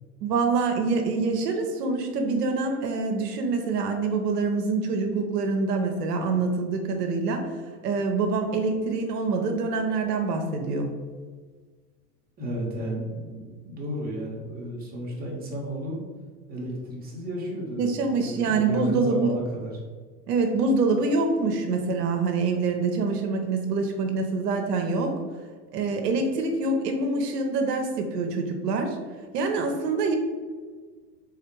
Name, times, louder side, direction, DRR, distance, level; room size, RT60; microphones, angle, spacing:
voice 1, 0.2-7.4 7.8-10.9 17.8-19.3 20.3-25.2 25.7-29.0 29.3-30.2, right 3 dB, 85° right, 4 dB, 0.8 m, -25 dB
voice 2, 12.4-16.0 16.5-19.7, equal, 20° right, -4 dB, 1.1 m, -33 dB
3.5 x 2.5 x 4.5 m, 1.5 s
hypercardioid pair, 120°, 47 cm